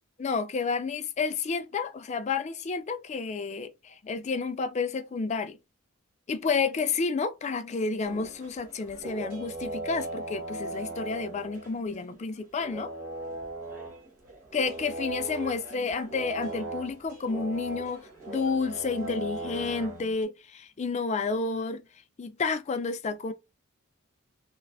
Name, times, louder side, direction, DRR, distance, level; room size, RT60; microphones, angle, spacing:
voice 1, 0.2-5.6 6.3-12.9 14.5-21.8 22.2-23.3, left 4 dB, 30° left, 0.3 m, -30 dB
sound 1, 8.0-12.2 12.6-20.2, right 2 dB, 35° right, 1.0 m, -38 dB
3.1 x 2.0 x 2.4 m
head